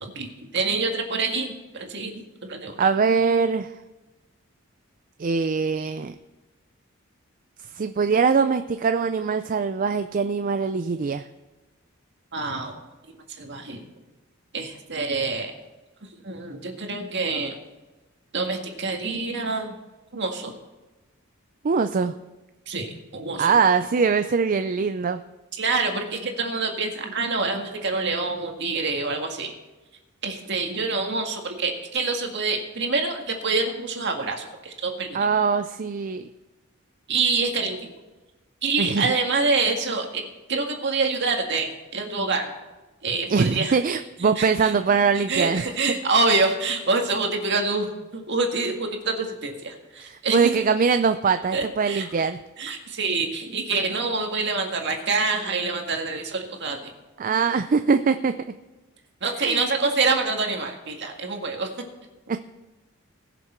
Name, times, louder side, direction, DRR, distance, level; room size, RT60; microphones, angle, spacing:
voice 1, 0.0-2.2 2.5-2.8 12.3-12.7 13.4-13.8 14.5-15.5 16.2-17.6 18.3-19.7 20.1-20.5 22.7-22.9 23.1-23.5 25.6-29.5 30.2-35.2 37.1-37.9 38.6-40.2 40.5-42.5 43.0-43.8 44.4-44.7 45.3-50.4 51.5-52.1 52.6-56.9 59.2-61.7, right 3 dB, 60° right, 3 dB, 1.9 m, -26 dB
voice 2, 2.8-3.7 5.2-6.2 7.7-11.3 21.6-22.1 23.4-25.2 35.1-36.3 38.8-39.1 43.3-45.6 50.0-52.4 57.2-58.3 59.4-59.6 62.3-62.4, right 5 dB, 40° right, 9 dB, 0.4 m, -22 dB
20.5 x 6.9 x 4.5 m, 1.1 s
head